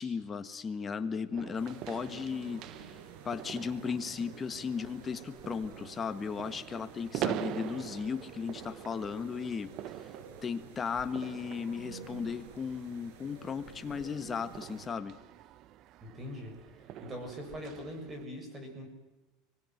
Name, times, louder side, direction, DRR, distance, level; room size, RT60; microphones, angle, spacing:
voice 1, 0.0-2.9 3.2-9.7 10.4-15.2, left 6 dB, 20° left, 10 dB, 1.5 m, -36 dB
sound 1, 1.3-18.2, right 12 dB, 45° right, 0.8 m, -44 dB
sound 2, 1.5-14.9, right 5 dB, 75° right, 5.0 m, -51 dB
voice 2, 16.0-18.9, equal, 20° right, 5 dB, 7.1 m, -42 dB
25.0 x 19.5 x 8.0 m, 1.1 s
supercardioid pair, 140°, 0 cm